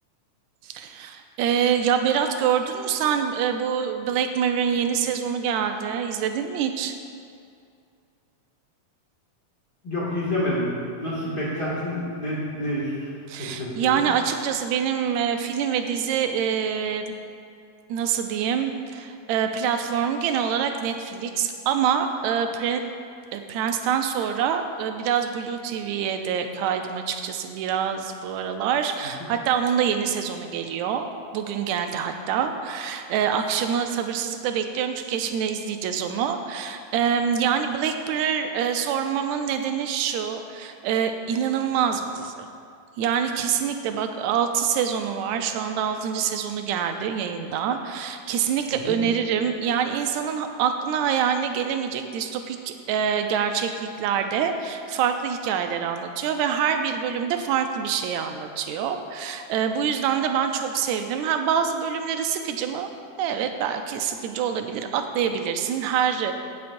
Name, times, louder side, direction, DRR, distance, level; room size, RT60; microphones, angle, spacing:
voice 1, 0.6-7.0 13.3-17.1 17.9-22.8 23.3-42.5 43.0-62.9 63.2-66.3, right 8 dB, 80° right, 6 dB, 1.7 m, -25 dB
voice 2, 9.8-13.1 13.4-14.0 48.7-49.0, left 1 dB, 35° left, -8 dB, 2.2 m, -28 dB
15.5 x 7.1 x 2.6 m, 2.4 s
omnidirectional pair, 3.7 m